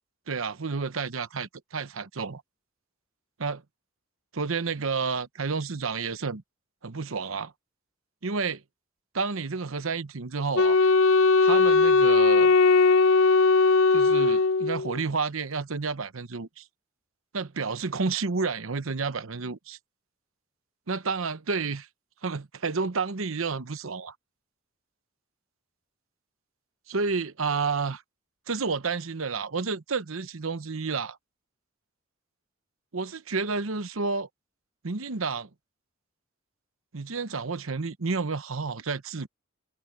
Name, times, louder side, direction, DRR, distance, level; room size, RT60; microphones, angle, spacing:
voice 1, 0.3-2.4 3.4-3.6 4.3-6.4 6.8-7.5 8.2-8.6 9.1-10.8 11.4-12.5 13.9-16.6 17.3-19.8 20.9-21.9 22.2-24.1 26.9-28.0 28.5-31.2 32.9-34.3 34.8-35.5 36.9-39.3, right 4 dB, 70° right, 0.9 m, -30 dB
Wind instrument woodwind instrument, 10.6-15.0, left 4 dB, 85° left, 0.6 m, -19 dB
head